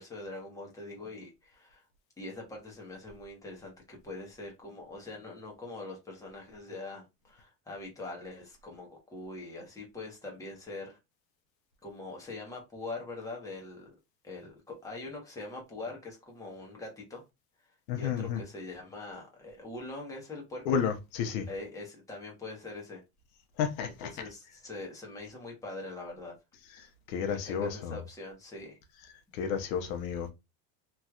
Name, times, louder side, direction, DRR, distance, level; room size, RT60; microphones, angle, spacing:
voice 1, 0.0-1.8 2.2-11.0 11.8-13.9 14.2-17.2 18.0-20.8 21.5-23.0 23.8-26.3 27.3-28.8, left 2 dB, 10° left, 1.0 m, -43 dB
voice 2, 17.9-18.4 20.7-21.5 23.6-24.1 27.1-28.0 29.3-30.3, left 7 dB, 80° left, 0.9 m, -31 dB
3.1 x 2.8 x 2.3 m
cardioid pair, 150°, 39 cm